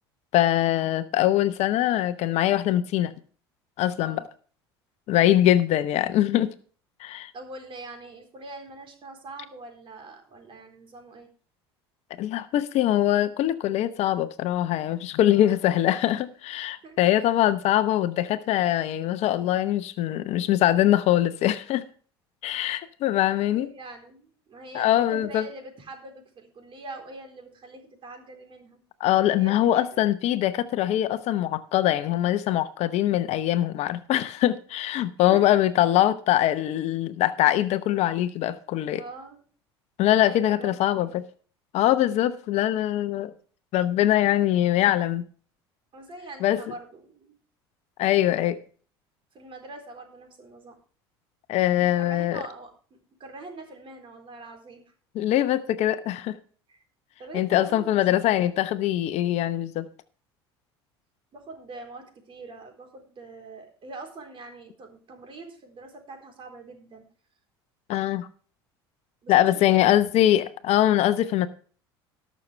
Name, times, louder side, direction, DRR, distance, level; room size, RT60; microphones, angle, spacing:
voice 1, 0.3-3.1 3.8-4.2 5.1-6.5 7.0-7.3 12.2-21.8 22.4-23.7 24.7-25.4 29.0-39.0 40.0-41.2 41.7-43.3 43.7-45.3 46.4-46.6 48.0-48.6 51.5-52.4 55.1-56.4 57.3-59.9 67.9-68.3 69.3-71.5, left 13 dB, 55° left, 0.9 m, -23 dB
voice 2, 7.3-11.3 15.3-15.6 16.8-17.3 23.5-28.8 29.3-30.0 35.3-35.4 39.0-39.4 40.2-41.2 45.9-47.4 49.3-50.8 51.8-52.7 53.2-54.8 56.7-56.8 57.2-58.4 61.3-67.1 69.2-70.1, right 2 dB, 40° right, 4.0 m, -43 dB
19.5 x 6.6 x 3.3 m
hypercardioid pair, 75°, 13 cm